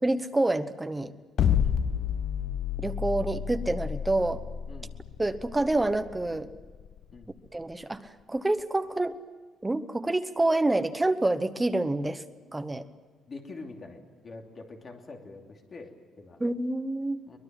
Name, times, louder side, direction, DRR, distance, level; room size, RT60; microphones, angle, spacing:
voice 1, 0.0-1.1 2.8-4.4 5.2-6.5 7.5-9.2 9.6-12.2 12.5-12.8 16.4-17.2, right 2 dB, 10° right, 10 dB, 1.0 m, -27 dB
sound 1, 1.4-7.6, left 8 dB, 50° left, 0.8 m, -29 dB
voice 2, 13.3-16.4 17.3-17.4, left 3 dB, 30° left, 3 dB, 2.9 m, -45 dB
23.5 x 21.0 x 7.6 m, 1.4 s
cardioid pair, 160°, 0 cm